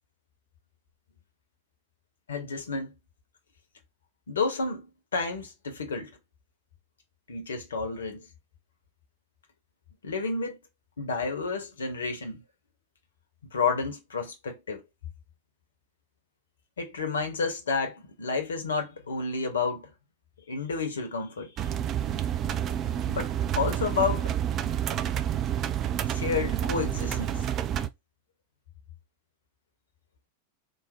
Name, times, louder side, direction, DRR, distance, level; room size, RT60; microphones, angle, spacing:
voice 1, 2.3-2.9 4.3-6.1 7.3-8.3 10.0-10.6 11.0-12.4 13.5-14.8 16.8-19.9 20.5-21.6 23.1-24.3 26.1-27.5, left 4 dB, 65° left, 0.7 m, -30 dB
sound 1, 21.6-27.9, right 10 dB, 30° right, 0.3 m, -29 dB
3.1 x 2.0 x 4.0 m
figure-of-eight pair, 90°, 0 cm